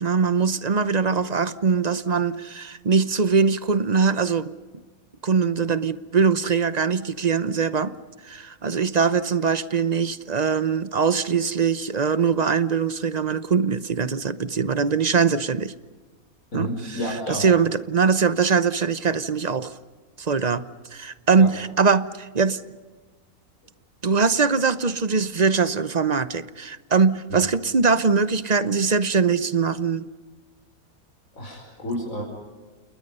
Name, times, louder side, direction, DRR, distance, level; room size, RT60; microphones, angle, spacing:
voice 1, 0.0-4.5 5.2-7.9 8.3-15.7 16.5-16.7 17.3-19.7 20.2-20.6 20.9-22.6 24.0-30.1, right 5 dB, 35° right, 0.8 m, -22 dB
voice 2, 16.5-17.5 21.4-21.5 27.3-27.4 31.3-32.2, equal, 65° left, 5.7 m, -30 dB
30.0 x 29.0 x 5.5 m
omnidirectional pair, 1.5 m